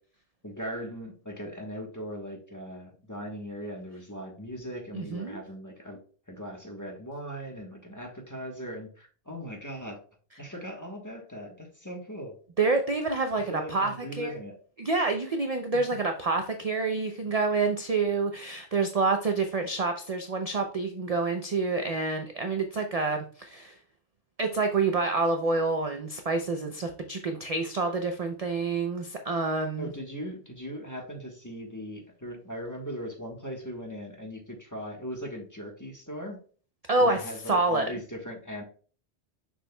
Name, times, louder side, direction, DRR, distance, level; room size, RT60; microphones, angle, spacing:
voice 1, 0.4-6.0 6.3-10.0 10.4-12.3 13.5-14.6 29.8-36.4 37.0-38.6, equal, 15° left, 1 dB, 1.2 m, -39 dB
voice 2, 4.9-5.4 12.6-14.3 14.8-23.8 24.4-29.9 36.9-37.9, right 3 dB, 45° right, 5 dB, 0.6 m, -28 dB
6.8 x 6.1 x 2.2 m, 0.41 s
omnidirectional pair, 1.2 m